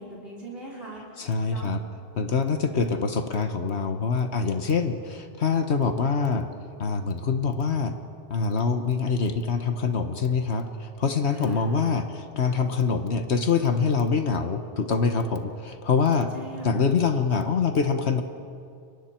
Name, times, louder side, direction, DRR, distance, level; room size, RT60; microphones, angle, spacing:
voice 1, 0.0-1.7 11.3-11.9 16.0-16.9, right 1 dB, 60° right, -4 dB, 5.0 m, -41 dB
voice 2, 1.2-1.8 2.2-6.5 6.8-8.0 8.3-16.3 16.6-18.2, left 5 dB, 70° left, 7 dB, 1.4 m, -25 dB
29.5 x 23.5 x 4.5 m, 2.4 s
omnidirectional pair, 1.1 m